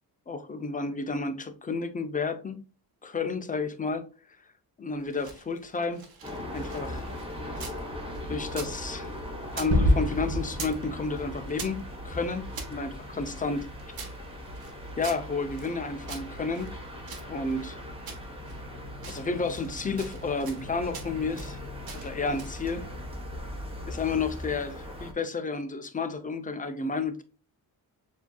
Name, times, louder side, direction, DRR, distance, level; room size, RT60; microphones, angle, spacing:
voice 1, 0.3-2.6 3.0-4.1 4.8-6.0 6.5-7.0 8.3-9.1 9.6-13.7 15.0-16.8 17.3-17.8 19.1-21.6 21.9-22.9 23.8-27.2, left 4 dB, 20° left, 0.5 m, -31 dB
sound 1, 5.0-7.8 8.1-9.7 10.0-10.8 11.1-12.7 13.3-15.7 16.1-17.7 18.1-18.6 18.9-19.7 20.0-20.6 20.9-21.5 21.9-22.6, right 5 dB, 65° right, 1.1 m, -44 dB
sound 2, 6.2-25.1, left 1 dB, 15° right, 1.0 m, -39 dB
Gunshot gunfire / Fireworks / Boom, 9.7-14.5, left 1 dB, 35° right, 1.1 m, -30 dB
7.0 x 2.7 x 2.2 m
wide cardioid pair, 135°, 38 cm